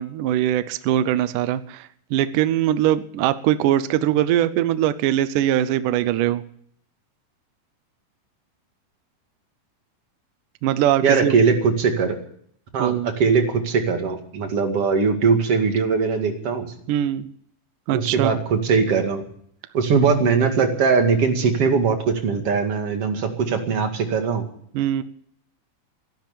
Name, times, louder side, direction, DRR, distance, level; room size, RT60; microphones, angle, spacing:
voice 1, 0.0-6.4 10.6-11.3 12.8-13.1 16.9-17.3 17.9-18.4 24.7-25.0, right 12 dB, 75° right, 13 dB, 2.1 m, -21 dB
voice 2, 11.0-12.2 12.7-16.7 17.9-19.2 19.7-24.5, right 5 dB, 45° right, 4 dB, 2.8 m, -20 dB
13.5 x 12.0 x 8.8 m, 0.62 s
omnidirectional pair, 4.1 m